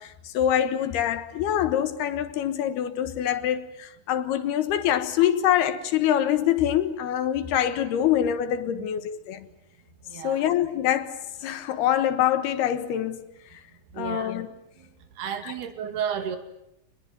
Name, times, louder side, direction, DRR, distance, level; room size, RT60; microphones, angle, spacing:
voice 1, 0.0-9.5 10.1-13.3 13.5-13.6 14.0-14.5 15.4-15.5, left 10 dB, 75° left, 3.2 m, -25 dB
voice 2, 10.1-10.4 13.9-14.4 14.8-16.4, right 8 dB, 70° right, 4.3 m, -33 dB
27.5 x 21.0 x 9.2 m
omnidirectional pair, 4.8 m